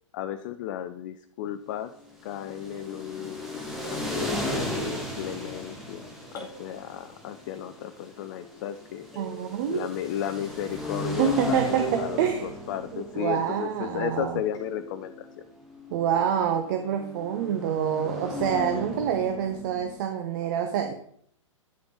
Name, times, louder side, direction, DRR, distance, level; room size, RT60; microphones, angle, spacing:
voice 1, 0.1-1.9 2.2-6.1 6.3-9.1 9.7-15.3, left 10 dB, 35° left, 8 dB, 0.5 m, -34 dB
sound 1, 2.1-20.0, left 1 dB, ahead, 1.8 m, -36 dB
sound 2, 6.4-7.8 9.1-11.2 11.8-13.9 14.5-15.9, right 7 dB, 15° left, 2.6 m, -44 dB
voice 2, 9.2-9.9 11.2-12.5 12.9-14.4 15.9-20.9, right 8 dB, 40° right, 6 dB, 0.9 m, -27 dB
9.9 x 6.8 x 3.9 m, 0.64 s
figure-of-eight pair, 110°, 17 cm